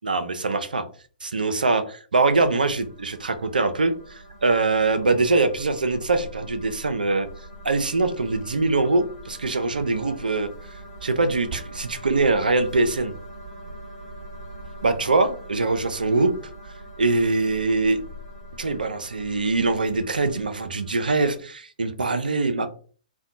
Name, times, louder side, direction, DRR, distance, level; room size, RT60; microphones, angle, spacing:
voice 1, 0.0-0.8 1.2-7.3 7.6-10.5 11.0-13.1 14.8-16.3 17.0-18.0 18.6-22.7, right 3 dB, 75° right, 0.4 m, -23 dB
sound 1, 2.2-21.4, right 1 dB, 20° right, 1.2 m, -42 dB
2.5 x 2.1 x 2.5 m
figure-of-eight pair, 120°, 5 cm